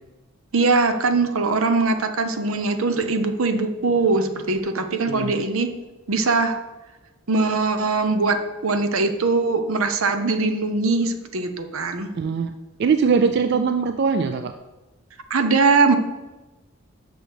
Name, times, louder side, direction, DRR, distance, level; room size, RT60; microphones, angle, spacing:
voice 1, 0.5-5.7 6.1-6.6 7.3-12.1 15.3-16.0, right 3 dB, 75° right, 8 dB, 0.7 m, -21 dB
voice 2, 12.2-12.5 12.8-14.5, right 5 dB, 50° right, 9 dB, 0.3 m, -21 dB
6.4 x 6.2 x 5.2 m, 1.1 s
head